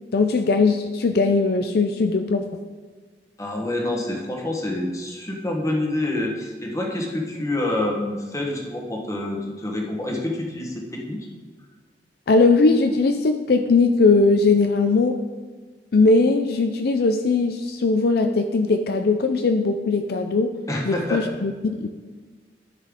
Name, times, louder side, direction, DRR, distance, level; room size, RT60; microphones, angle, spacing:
voice 1, 0.1-2.5 12.3-15.2 15.9-20.5 20.9-21.9, left 3 dB, 60° left, 7 dB, 0.4 m, -19 dB
voice 2, 3.4-11.3 20.7-21.3, left 1 dB, 20° left, 1 dB, 1.2 m, -27 dB
12.5 x 5.5 x 3.7 m, 1.4 s
head